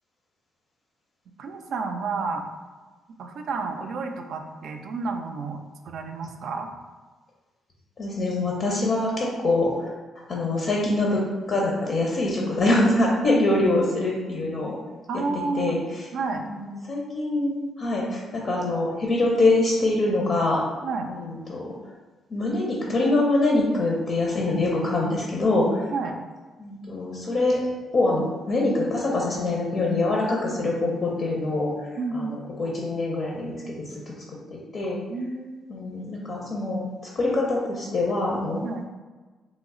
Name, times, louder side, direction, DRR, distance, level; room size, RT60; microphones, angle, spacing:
voice 1, 1.4-2.4 3.2-6.7 15.1-15.8 16.1-16.4 20.8-21.1 25.9-26.2 32.0-32.3 35.1-35.7 38.6-38.8, right 4 dB, 70° right, 5 dB, 0.3 m, -30 dB
voice 2, 8.0-9.7 10.3-11.2 11.5-14.8 15.6-15.8 16.3-20.6 21.1-21.7 22.3-25.8 26.6-27.6 27.9-31.7 32.1-33.5 33.9-34.1 34.5-35.0 35.7-36.8 37.2-38.6, left 2 dB, 50° left, -2 dB, 0.5 m, -24 dB
3.1 x 2.0 x 3.6 m, 1.3 s
cardioid pair, 90°, 0 cm